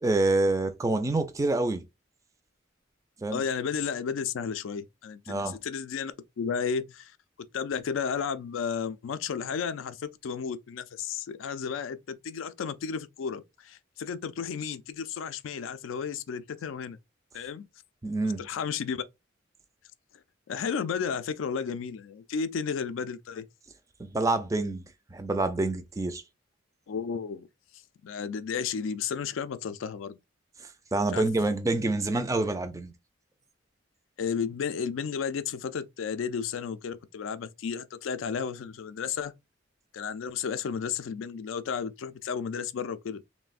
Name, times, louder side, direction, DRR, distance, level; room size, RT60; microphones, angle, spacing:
voice 1, 0.0-1.8 3.2-3.4 5.3-5.6 18.0-18.4 24.0-24.8 25.1-26.2 30.9-32.9, right 2 dB, 15° right, 0.4 m, -27 dB
voice 2, 3.3-7.1 7.5-17.0 17.3-17.7 18.2-19.0 20.5-23.5 26.9-27.5 28.0-30.2 31.1-31.3 34.2-39.3 39.9-43.2, left 6 dB, 80° left, 0.4 m, -33 dB
3.2 x 2.1 x 2.3 m
head